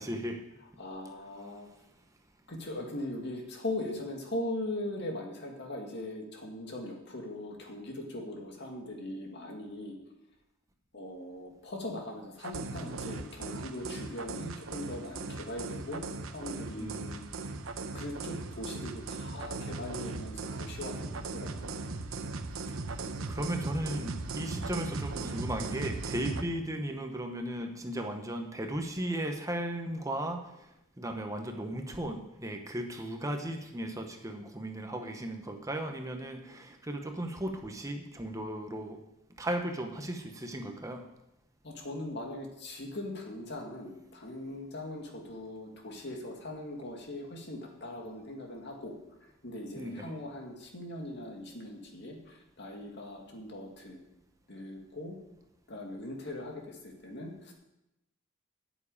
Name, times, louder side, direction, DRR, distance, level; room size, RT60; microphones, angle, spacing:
voice 1, 0.0-0.4 16.8-17.3 23.0-30.7 31.0-39.0 39.4-41.0 49.8-50.1, right 1 dB, 15° right, 4 dB, 1.0 m, -36 dB
voice 2, 0.6-1.7 2.5-10.0 10.9-16.0 16.3-17.3 17.9-21.9 41.6-48.9 49.4-54.0 54.5-55.2 55.7-57.5, left 1 dB, 60° left, 1 dB, 2.2 m, -40 dB
sound 1, 12.4-26.4, right 3 dB, 85° right, 0.9 m, -38 dB
9.2 x 7.3 x 8.6 m, 0.89 s
head